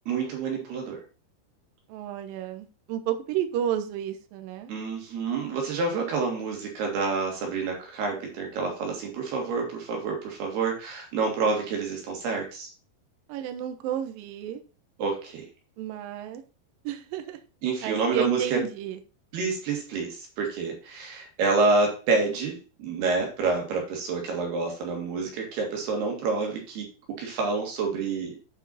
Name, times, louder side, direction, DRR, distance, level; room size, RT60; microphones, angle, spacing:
voice 1, 0.1-1.0 4.7-12.7 15.0-15.4 17.6-18.6 19.3-28.3, right 4 dB, 60° right, 3.7 m, -28 dB
voice 2, 1.9-4.7 13.3-14.6 15.8-16.4 16.8-17.4 17.8-19.0, right 10 dB, 85° right, 2.0 m, -32 dB
9.0 x 5.8 x 4.1 m
omnidirectional pair, 5.5 m